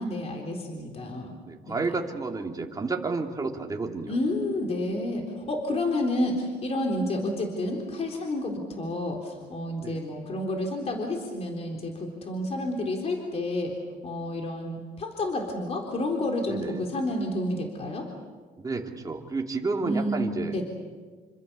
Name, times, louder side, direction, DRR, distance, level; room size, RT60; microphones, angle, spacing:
voice 1, 0.0-1.4 1.7-1.9 4.1-13.7 14.0-18.1 19.8-20.2 20.5-20.6, left 1 dB, 40° left, 2 dB, 3.8 m, -30 dB
voice 2, 1.4-4.2 9.8-10.0 16.5-16.9 18.6-20.6, right 3 dB, 20° right, 1 dB, 3.1 m, -31 dB
28.0 x 26.0 x 6.9 m, 1.4 s
cardioid pair, 110°, 17 cm